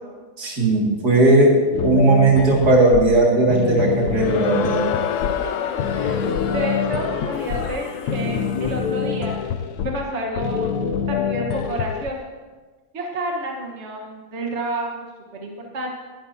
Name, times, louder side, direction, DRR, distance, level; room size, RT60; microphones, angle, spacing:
voice 1, 0.4-4.8, right 2 dB, 85° right, -2 dB, 3.0 m, -17 dB
sound 1, 1.7-12.1, left 6 dB, 80° left, 1.3 m, -26 dB
Crowd, 4.1-9.1, left 8 dB, 60° left, 0.9 m, -29 dB
voice 2, 5.4-9.4 9.8-10.8 11.1-12.2 12.9-15.1 15.3-15.9, right 1 dB, 45° right, 0 dB, 1.8 m, -30 dB
20.5 x 11.5 x 2.9 m, 1.3 s
omnidirectional pair, 1.7 m